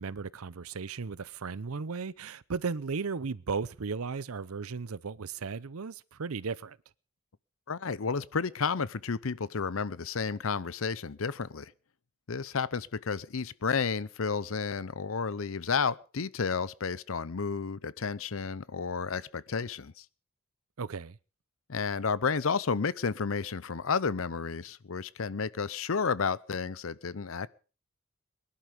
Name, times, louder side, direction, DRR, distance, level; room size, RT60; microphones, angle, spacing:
voice 1, 0.0-6.8 20.8-21.2, right 5 dB, 90° right, 0.7 m, -35 dB
voice 2, 7.7-11.7 12.3-20.0 21.7-27.5, left 5 dB, 70° left, 0.7 m, -31 dB
21.5 x 11.5 x 5.1 m
head